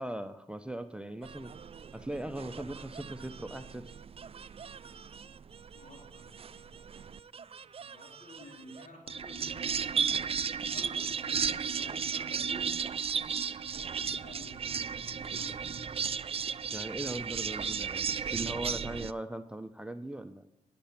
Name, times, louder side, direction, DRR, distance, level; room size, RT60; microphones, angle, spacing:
voice 1, 0.0-1.5 1.9-4.0 16.7-20.5, right 1 dB, 5° right, 10 dB, 0.7 m, -39 dB
sound 1, 1.2-19.1, right 6 dB, 40° right, 0.4 m, -35 dB
voice 2, 5.7-7.2 7.8-12.7 13.5-15.7, left 1 dB, 60° left, -2 dB, 4.2 m, -51 dB
10.0 x 6.8 x 5.7 m, 0.80 s
cardioid pair, 50°, 15 cm